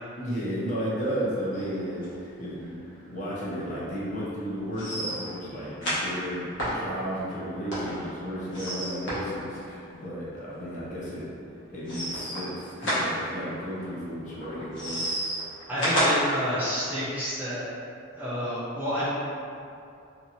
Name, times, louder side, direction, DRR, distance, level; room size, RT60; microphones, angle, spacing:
voice 1, 0.2-2.7 3.1-11.3 11.7-15.0, equal, 35° left, -8 dB, 0.7 m, -33 dB
sound 1, 1.5-2.1 2.4-2.5 2.9-3.0 3.3-3.4 4.7-10.0 10.4-10.5 11.8-13.8 14.4-16.8, equal, 70° left, 1.0 m, -31 dB
voice 2, 15.7-17.7 18.2-19.1, equal, 10° right, -11 dB, 0.4 m, -29 dB
2.9 x 2.7 x 2.6 m, 2.5 s
head